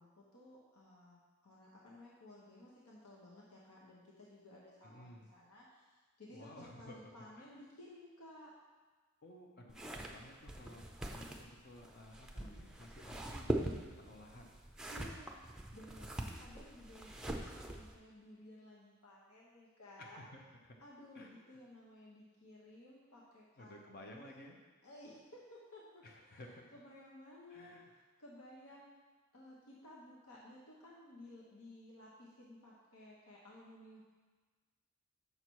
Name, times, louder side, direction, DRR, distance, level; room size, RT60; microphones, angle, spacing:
voice 1, 0.0-8.5 14.9-20.2 20.8-24.3 24.8-27.7 28.2-28.9 29.3-34.0, left 1 dB, 80° left, -4 dB, 1.1 m, -56 dB
voice 2, 4.8-5.3 6.3-7.1 7.4-7.5 9.2-14.6 20.0-20.7 21.1-21.3 23.6-24.6 26.0-26.6 27.5-27.9, left 1 dB, 45° left, 1 dB, 0.8 m, -55 dB
sound 1, 9.7-17.9, right 1 dB, 5° right, 0.5 m, -43 dB
6.7 x 5.6 x 4.7 m, 1.4 s
head